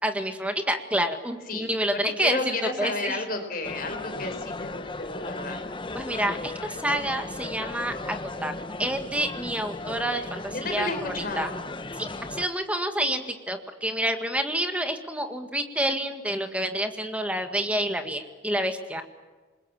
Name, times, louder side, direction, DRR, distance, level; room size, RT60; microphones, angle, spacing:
voice 1, 0.0-3.2 5.9-8.2 8.4-8.5 8.8-11.5 12.0-19.0, right 1 dB, 5° right, 6 dB, 1.9 m, -28 dB
voice 2, 2.2-5.6 10.5-11.5, left 3 dB, 50° left, 6 dB, 4.6 m, -32 dB
sound 1, 3.6-12.5, left 2 dB, 25° left, 0.9 m, -36 dB
28.0 x 21.0 x 7.2 m, 1.3 s
head